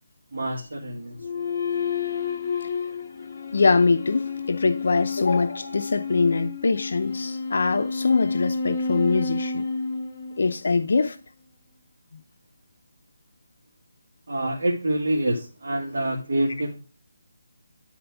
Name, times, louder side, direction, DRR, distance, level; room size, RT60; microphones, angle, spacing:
voice 1, 0.3-1.5 14.3-16.8, right 1 dB, 60° right, 1.7 m, -27 dB
sound 1, 1.2-10.8, left 4 dB, 30° left, 1.1 m, -30 dB
voice 2, 3.5-9.7 10.4-11.2 12.1-12.2, left 4 dB, 60° left, 0.5 m, -23 dB
10.5 x 4.3 x 3.4 m
hypercardioid pair, 170°, 0 cm